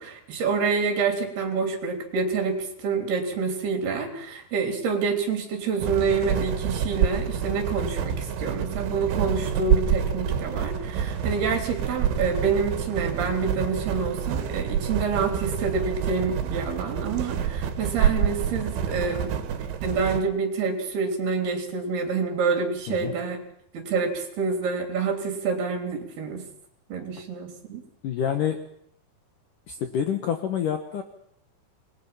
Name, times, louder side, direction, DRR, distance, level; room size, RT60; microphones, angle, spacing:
voice 1, 0.0-19.3 19.8-23.4 23.7-26.4 26.9-27.8, right 5 dB, 60° right, 3 dB, 5.1 m, -27 dB
sound 1, 5.8-20.2, right 8 dB, 85° right, 4.2 m, -27 dB
voice 2, 28.0-28.6 29.7-31.0, left 8 dB, 65° left, 5 dB, 2.2 m, -27 dB
28.0 x 21.5 x 5.8 m, 0.68 s
omnidirectional pair, 5.4 m